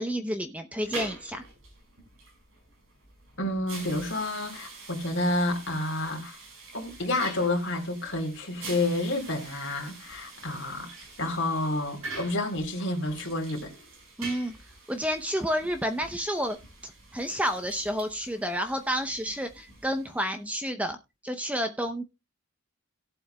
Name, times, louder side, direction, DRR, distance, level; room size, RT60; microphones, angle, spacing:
voice 1, 0.0-1.4 14.2-14.6 14.9-16.6 17.1-21.0 21.2-22.0, equal, 5° right, 0.7 m, -30 dB
sound 1, 0.8-20.4, right 3 dB, 70° right, 5.1 m, -45 dB
voice 2, 3.4-6.4 6.7-13.7, left 2 dB, 55° left, 3.5 m, -29 dB
17.5 x 7.8 x 2.2 m
head